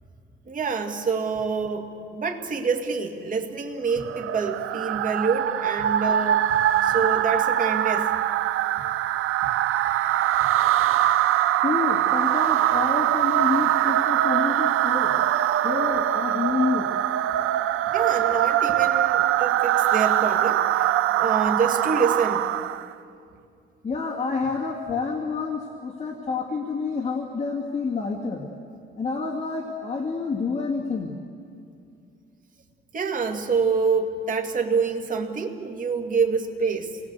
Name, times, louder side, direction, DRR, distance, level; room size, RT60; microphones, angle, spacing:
voice 1, 0.5-8.2 17.9-22.5 32.9-37.0, right 5 dB, 40° right, 3 dB, 2.3 m, -26 dB
sound 1, 4.0-22.9, right 12 dB, 85° right, 0.6 m, -23 dB
voice 2, 11.6-15.1 15.6-16.9 23.8-28.5 28.9-31.2, left 4 dB, 30° left, -1 dB, 2.1 m, -28 dB
27.0 x 20.0 x 8.1 m, 2.5 s
cardioid pair, 140°, 21 cm